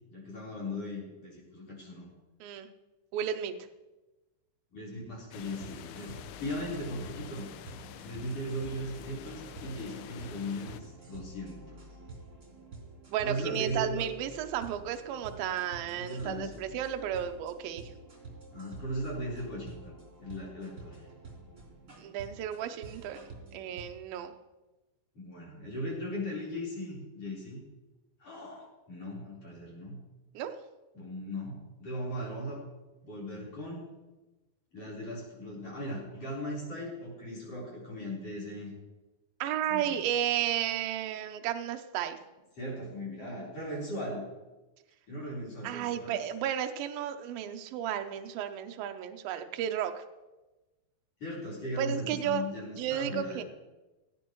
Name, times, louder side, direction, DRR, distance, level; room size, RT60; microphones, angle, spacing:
voice 1, 0.1-2.1 4.7-7.5 8.0-11.8 13.2-14.1 16.0-16.6 18.5-19.9 20.2-21.0 25.1-27.6 28.2-30.0 30.9-32.6 33.0-33.9 34.7-38.7 39.7-40.0 42.6-44.3 45.1-46.2 51.2-53.4, equal, 35° left, -3 dB, 4.8 m, -38 dB
voice 2, 3.1-3.5 13.1-17.9 22.0-23.2 23.5-24.3 30.3-30.5 39.4-42.2 45.6-50.0 51.8-52.4 52.8-53.4, right 10 dB, 80° right, 7 dB, 2.2 m, -33 dB
sound 1, 5.3-10.8, left 11 dB, 85° left, 2.3 m, -47 dB
sound 2, 5.4-23.8, right 2 dB, 20° right, 3.7 m, -49 dB
17.5 x 13.5 x 3.1 m, 1.1 s
omnidirectional pair, 5.2 m